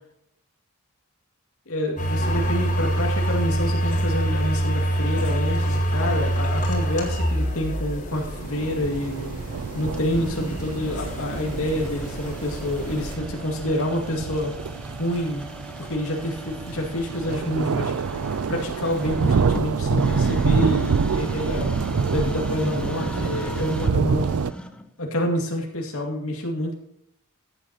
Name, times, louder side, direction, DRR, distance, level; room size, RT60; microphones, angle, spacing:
voice 1, 1.7-9.3 9.7-14.6 15.0-15.5 15.8-17.9 18.5-21.7 22.1-24.4 25.0-26.7, left 1 dB, 75° left, -1 dB, 2.3 m, -28 dB
sound 1, 2.0-13.2, right 1 dB, 35° left, 2.9 m, -26 dB
sound 2, 8.1-24.5, right 5 dB, 85° right, 0.5 m, -27 dB
sound 3, 9.9-24.9, equal, 5° left, 0.8 m, -38 dB
14.5 x 9.3 x 3.0 m, 0.77 s
head